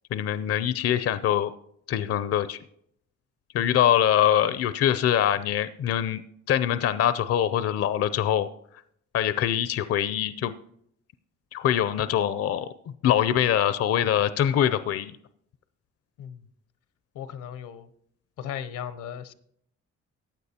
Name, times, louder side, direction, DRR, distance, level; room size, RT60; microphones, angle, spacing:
voice 1, 0.1-1.5 1.9-2.6 3.5-6.2 6.5-8.5 9.1-10.5 11.5-12.7 13.0-15.1, left 10 dB, 50° left, 14 dB, 0.5 m, -23 dB
voice 2, 17.1-17.9 18.4-19.3, left 9 dB, 80° left, 13 dB, 0.8 m, -37 dB
15.0 x 9.2 x 2.8 m, 0.69 s
cardioid pair, 90°, 30 cm